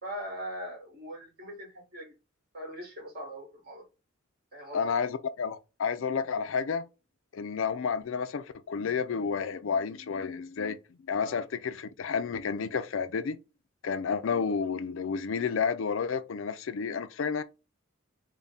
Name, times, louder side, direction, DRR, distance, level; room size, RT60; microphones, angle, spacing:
voice 1, 0.0-2.1 2.5-3.8 4.5-4.9 11.2-11.4, equal, 50° right, 1.8 m, -41 dB
voice 2, 4.7-6.9 7.3-10.8 11.1-13.4 13.8-17.4, left 6 dB, 65° left, 0.4 m, -31 dB
3.5 x 2.2 x 3.9 m
head